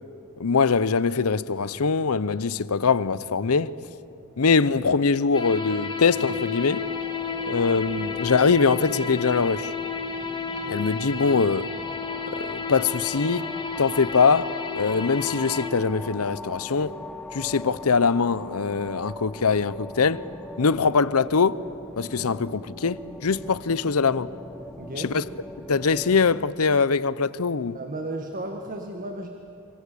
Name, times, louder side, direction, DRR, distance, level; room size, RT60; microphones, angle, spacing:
voice 1, 0.4-3.7 4.4-6.8 7.5-9.7 10.7-11.7 12.3-13.5 13.8-16.9 17.3-20.2 20.6-21.6 22.0-24.3 25.0-25.2 25.7-27.8, left 5 dB, 70° left, 0.7 m, -22 dB
sound 1, 5.3-15.7, left 5 dB, 20° left, 1.8 m, -32 dB
sound 2, 6.7-26.4, left 1 dB, 5° left, 0.9 m, -41 dB
voice 2, 24.8-25.1 27.7-29.3, right 1 dB, 40° right, 1.7 m, -34 dB
27.0 x 25.5 x 8.5 m
head